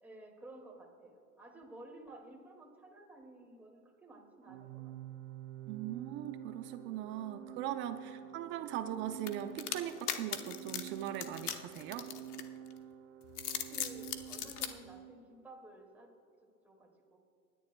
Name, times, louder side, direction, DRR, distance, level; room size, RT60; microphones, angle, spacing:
voice 1, 0.0-5.2 13.4-16.1 16.6-17.2, right 2 dB, 5° right, 0 dB, 2.0 m, -54 dB
Organ, 4.4-15.2, right 11 dB, 55° right, 1.0 m, -48 dB
voice 2, 5.7-12.1, right 11 dB, 25° right, 10 dB, 0.5 m, -40 dB
sound 1, 9.3-12.7 13.2-14.7, left 10 dB, 75° left, 1.1 m, -39 dB
26.0 x 10.5 x 2.2 m, 2.5 s
hypercardioid pair, 115°, 46 cm